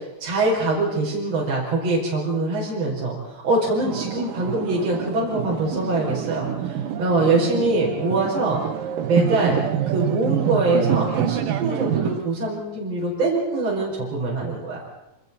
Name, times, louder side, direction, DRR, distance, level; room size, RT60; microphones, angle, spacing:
voice 1, 0.2-8.6 9.1-14.8, right 2 dB, 50° right, -4 dB, 5.9 m, -23 dB
sound 1, 3.8-12.2, right 9 dB, 85° right, 2.9 m, -26 dB
27.0 x 27.0 x 4.2 m, 0.96 s
omnidirectional pair, 3.8 m